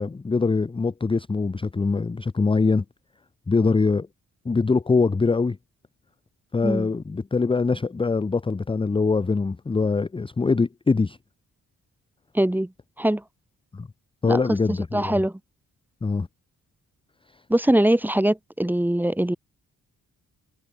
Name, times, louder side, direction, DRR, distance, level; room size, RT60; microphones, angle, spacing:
voice 1, 0.0-2.8 3.5-4.1 4.4-5.6 6.5-11.2 13.7-13.9 14.2-15.2 16.0-16.3, left 4 dB, 15° left, 0.5 m, -23 dB
voice 2, 12.3-12.7 13.0-13.2 14.2-14.4 14.7-15.3 17.5-19.4, right 1 dB, 5° right, 1.0 m, -22 dB
wide cardioid pair, 140°, 34 cm